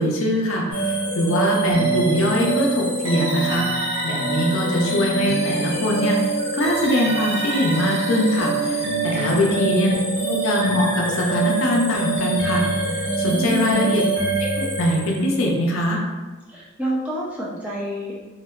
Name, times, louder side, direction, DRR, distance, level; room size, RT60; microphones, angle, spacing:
voice 1, 0.0-3.7 4.0-6.2 6.5-10.0 10.3-12.6 13.2-14.0 14.4-14.5 14.8-16.0, left 1 dB, 60° left, -1 dB, 0.4 m, -22 dB
sound 1, 0.7-15.5, right 3 dB, 70° right, 1.0 m, -25 dB
voice 2, 9.1-9.6 13.3-13.8 16.5-18.3, right 1 dB, 5° right, -6 dB, 0.3 m, -29 dB
2.6 x 2.1 x 2.2 m, 1.3 s
head